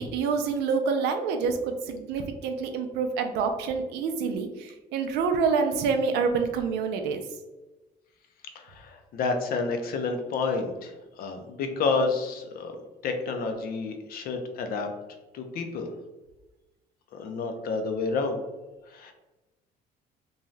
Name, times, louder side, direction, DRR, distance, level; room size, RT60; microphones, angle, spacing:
voice 1, 0.0-7.2, right 5 dB, 90° right, 6 dB, 0.4 m, -27 dB
voice 2, 8.5-12.7 13.0-14.9 15.3-15.9 17.1-18.4 18.9-19.1, left 4 dB, 60° left, 5 dB, 0.5 m, -29 dB
2.6 x 2.3 x 3.1 m, 1.1 s
cardioid pair, 110°, 17 cm